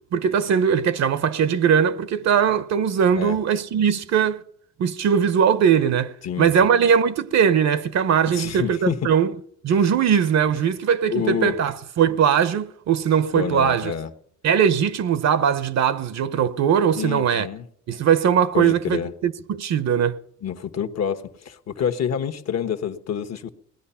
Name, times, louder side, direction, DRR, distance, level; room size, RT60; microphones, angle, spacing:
voice 1, 0.1-4.4 4.8-9.3 9.6-13.9 14.4-17.5 17.9-20.2, right 7 dB, 60° right, 0.9 m, -20 dB
voice 2, 8.3-9.2 11.1-11.6 13.3-14.1 16.9-17.7 18.5-19.1 20.4-23.5, left 8 dB, 60° left, 1.3 m, -27 dB
19.0 x 11.0 x 5.7 m
cardioid pair, 90°, 30 cm